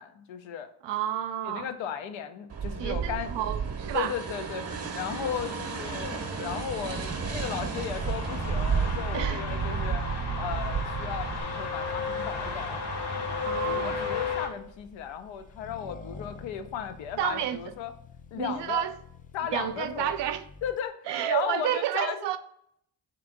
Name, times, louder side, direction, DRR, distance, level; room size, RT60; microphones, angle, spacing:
voice 1, 0.0-0.7 1.4-3.3 3.9-4.7 4.9-10.0 10.4-12.8 13.3-17.9 18.3-18.9 19.3-20.1 20.6-21.0 21.3-22.3, left 8 dB, 80° left, 0.6 m, -35 dB
voice 2, 0.8-1.7 2.8-4.2 9.1-9.4 13.4-14.0 17.2-17.6 18.3-19.0 19.5-20.4 21.1-22.4, right 11 dB, 70° right, 0.5 m, -30 dB
sound 1, 2.5-11.4, right 6 dB, 35° right, 0.8 m, -32 dB
sound 2, 5.2-14.5, left 3 dB, 60° left, 1.1 m, -34 dB
Accelerating revving vroom, 10.5-20.9, left 3 dB, 20° left, 0.4 m, -48 dB
3.4 x 3.0 x 3.7 m
supercardioid pair, 45°, 45 cm